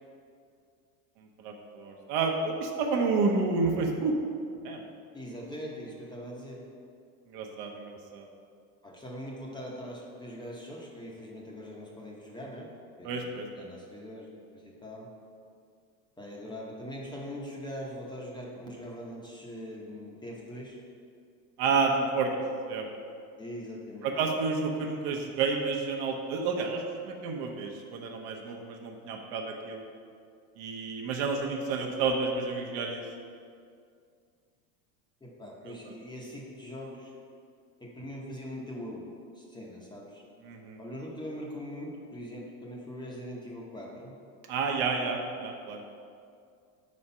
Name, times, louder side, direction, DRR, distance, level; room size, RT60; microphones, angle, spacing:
voice 1, 1.2-4.2 4.6-4.8 7.3-8.3 13.0-13.7 21.6-22.9 24.0-29.8 30.6-33.0 35.7-35.8 40.4-40.8 44.5-45.8, right 4 dB, 60° right, 2 dB, 0.9 m, -30 dB
voice 2, 5.1-6.6 8.8-12.7 13.0-13.3 13.5-14.3 14.5-15.1 16.2-20.8 23.4-24.2 35.2-37.1 37.8-39.1 39.3-40.2 40.8-44.2, equal, 10° left, -3 dB, 0.7 m, -41 dB
4.9 x 4.3 x 5.5 m, 2.3 s
supercardioid pair, 125°, 43 cm